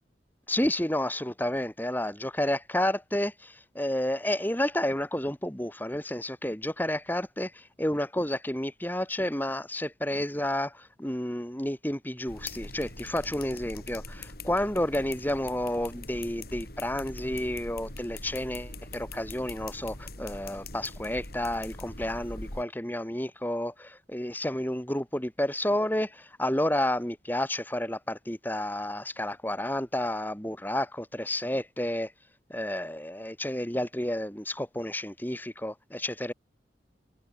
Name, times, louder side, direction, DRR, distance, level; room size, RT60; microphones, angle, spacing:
voice 1, 0.5-32.1 32.5-36.3, left 1 dB, 10° left, 1.9 m, -31 dB
sound 1, 12.3-22.6, left 2 dB, 55° left, 7.7 m, -42 dB
head